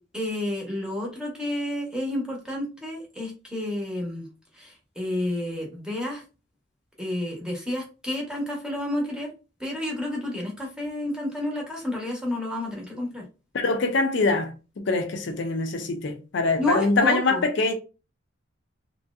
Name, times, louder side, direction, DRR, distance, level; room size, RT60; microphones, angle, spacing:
voice 1, 0.1-4.3 4.5-6.2 7.0-9.3 9.6-13.3 16.6-17.4, left 1 dB, 5° right, 0.8 m, -30 dB
voice 2, 13.5-17.7, left 3 dB, 60° left, 0.5 m, -24 dB
3.0 x 2.6 x 2.3 m
head